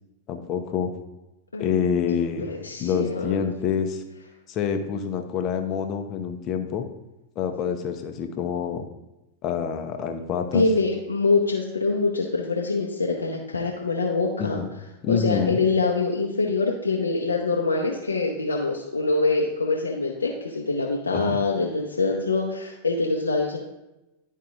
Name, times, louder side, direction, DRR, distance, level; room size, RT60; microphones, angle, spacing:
voice 1, 0.3-0.9 1.6-2.5 2.8-4.0 4.5-6.9 7.4-8.9 9.4-10.6 14.4-14.7 15.0-15.6 21.1-21.4, left 7 dB, 35° left, 5 dB, 0.9 m, -27 dB
voice 2, 2.5-3.5 10.5-14.6 15.1-23.6, left 3 dB, 75° left, -2 dB, 0.8 m, -24 dB
11.5 x 4.6 x 2.5 m, 0.97 s
figure-of-eight pair, 90°, 0 cm